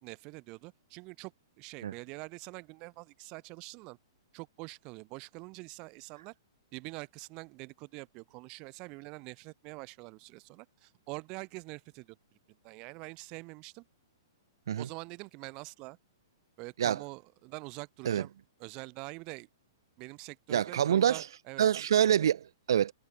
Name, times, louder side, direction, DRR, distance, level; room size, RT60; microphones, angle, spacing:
voice 1, 0.0-4.0 4.3-6.3 6.7-12.2 12.6-13.8 14.8-16.0 16.6-18.3 18.6-19.5 20.0-21.9, right 27 dB, 30° right, 4.3 m, -45 dB
voice 2, 20.5-21.2 21.6-22.9, right 9 dB, 70° right, 1.1 m, -26 dB
hypercardioid pair, 150°, 2 cm